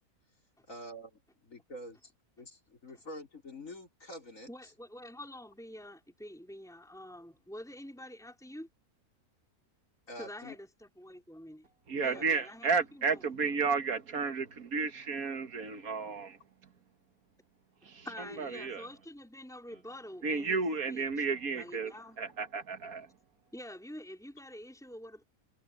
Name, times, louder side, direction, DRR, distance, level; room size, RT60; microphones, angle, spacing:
voice 1, 0.7-2.1 2.4-4.5 10.1-10.6 11.9-12.3, equal, 60° left, 5.7 m, -46 dB
voice 2, 4.5-8.7 10.2-11.7 12.0-13.4 18.0-20.6 20.9-21.3 21.5-22.1 23.5-25.2, left 1 dB, ahead, 4.6 m, -47 dB
voice 3, 11.9-16.4 18.4-18.8 20.2-21.9 22.4-23.1, right 5 dB, 70° right, 2.0 m, -32 dB
omnidirectional pair, 1.6 m